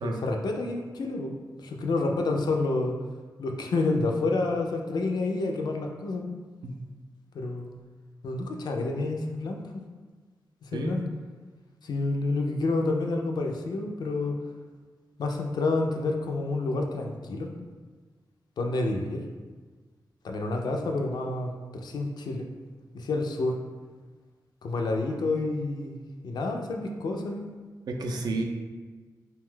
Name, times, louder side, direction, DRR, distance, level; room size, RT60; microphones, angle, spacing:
voice 1, 0.0-1.3 1.6-3.0 3.4-6.3 7.3-7.7 8.2-9.8 10.6-11.0 11.8-14.4 15.2-17.5 18.6-19.2 20.2-22.5 22.9-23.6 24.6-26.0 26.2-27.5, left 2 dB, 70° left, 3 dB, 0.4 m, -29 dB
voice 2, 27.9-28.4, right 2 dB, 70° right, 2 dB, 0.4 m, -31 dB
2.6 x 2.2 x 3.6 m, 1.4 s
cardioid pair, 65°, 7 cm